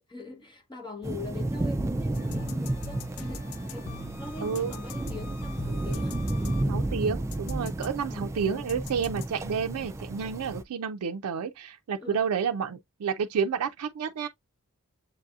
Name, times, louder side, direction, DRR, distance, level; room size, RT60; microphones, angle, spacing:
voice 1, 0.1-6.9 8.1-8.8 12.0-12.3, left 3 dB, 20° left, 0.8 m, -43 dB
sound 1, 1.0-10.6, right 1 dB, 15° right, 0.3 m, -32 dB
sound 2, 2.1-7.0 7.3-7.9 8.7-9.3, left 7 dB, 70° left, 0.3 m, -45 dB
voice 2, 4.4-4.7 6.6-14.3, right 6 dB, 90° right, 0.4 m, -30 dB
7.3 x 2.7 x 2.3 m
head